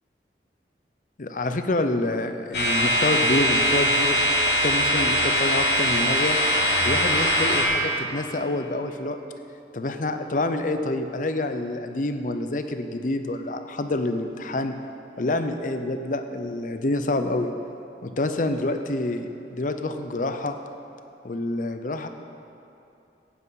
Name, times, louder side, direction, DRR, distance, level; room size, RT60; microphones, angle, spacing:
voice 1, 1.2-6.4 6.8-9.2 9.7-14.7 15.2-17.5 18.0-20.5 21.2-22.1, left 2 dB, 45° left, 8 dB, 0.6 m, -27 dB
sound 1, 2.5-7.7, equal, 70° left, 2.5 m, -21 dB
15.0 x 9.6 x 4.1 m, 2.7 s
head